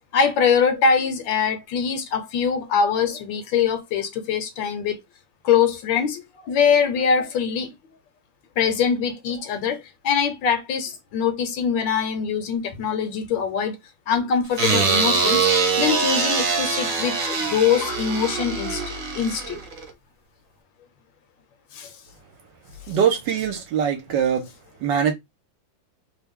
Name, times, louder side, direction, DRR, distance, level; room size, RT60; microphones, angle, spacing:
voice 1, 0.1-5.0 5.4-7.7 8.6-13.8 14.1-19.6 21.7-21.9, left 6 dB, 75° left, 1.3 m, -23 dB
sound 1, 14.6-19.9, right 4 dB, 50° right, 1.1 m, -23 dB
voice 2, 22.9-24.5 24.8-25.1, right 8 dB, 70° right, 1.3 m, -22 dB
3.1 x 2.2 x 3.4 m
omnidirectional pair, 2.2 m